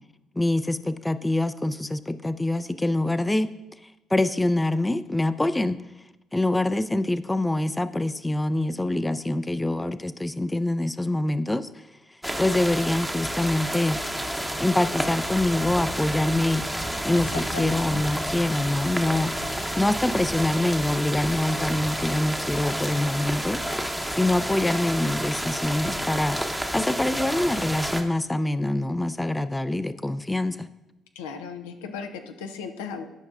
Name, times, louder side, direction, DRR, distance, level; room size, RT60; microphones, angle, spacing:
voice 1, 0.4-3.5 4.1-5.8 6.3-11.7 12.4-14.0 14.6-16.6 17.0-19.3 19.8-23.6 24.1-26.4 26.7-30.7, left 1 dB, 15° left, 12 dB, 0.4 m, -25 dB
sound 1, 12.2-28.0, equal, 5° right, 0.8 m, -30 dB
voice 2, 17.1-18.0 31.2-33.0, left 5 dB, 90° left, 6 dB, 0.5 m, -36 dB
11.5 x 5.3 x 2.4 m, 0.97 s
hypercardioid pair, 55°, 0 cm